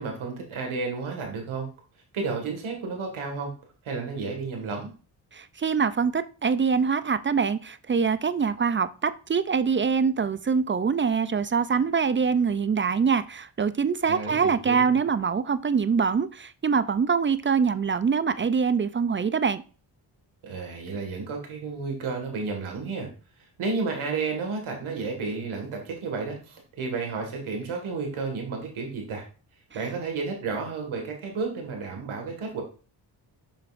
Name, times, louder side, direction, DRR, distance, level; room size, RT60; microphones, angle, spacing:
voice 1, 0.0-1.7 2.1-3.5 3.8-4.9 14.1-15.0 20.4-23.1 23.6-29.2 29.7-32.6, right 4 dB, 85° right, 3 dB, 1.9 m, -32 dB
voice 2, 5.3-19.6, right 6 dB, 30° right, 14 dB, 0.3 m, -24 dB
7.1 x 5.7 x 2.5 m, 0.36 s
cardioid pair, 60°, 48 cm